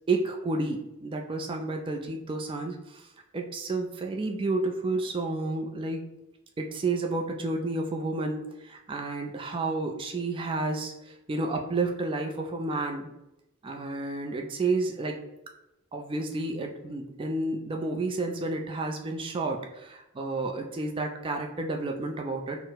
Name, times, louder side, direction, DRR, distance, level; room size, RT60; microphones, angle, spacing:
voice 1, 0.1-3.1 3.3-6.0 6.6-13.1 13.6-15.2 15.9-22.6, right 2 dB, 25° right, 2 dB, 0.3 m, -31 dB
4.1 x 2.0 x 3.9 m, 0.90 s
head